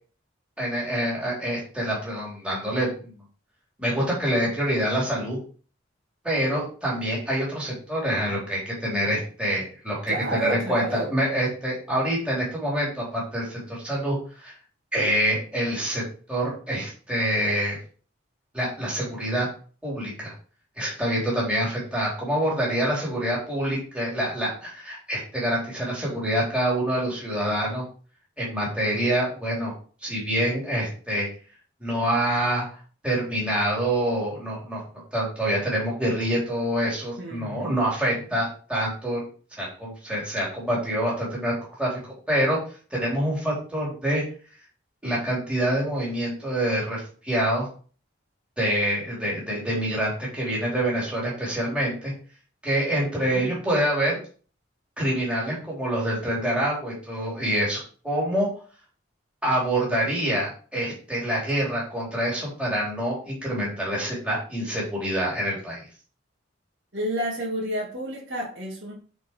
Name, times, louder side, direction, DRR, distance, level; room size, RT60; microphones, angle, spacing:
voice 1, 0.6-3.2 3.8-5.4 6.2-14.5 14.9-16.0 16.3-17.8 18.5-19.5 19.8-20.3 20.8-27.8 28.4-29.7 30.0-31.3 31.8-32.8 33.0-34.8 35.1-39.2 39.6-42.6 42.9-44.2 45.0-47.7 48.6-52.1 52.6-54.2 55.0-58.5 59.4-65.9, right 1 dB, 5° right, -6 dB, 3.6 m, -26 dB
voice 2, 10.1-11.1 37.2-37.8 38.1-38.2 53.3-53.5 66.9-68.9, right 1 dB, 70° right, -5 dB, 2.6 m, -30 dB
9.4 x 4.7 x 4.7 m, 0.40 s
head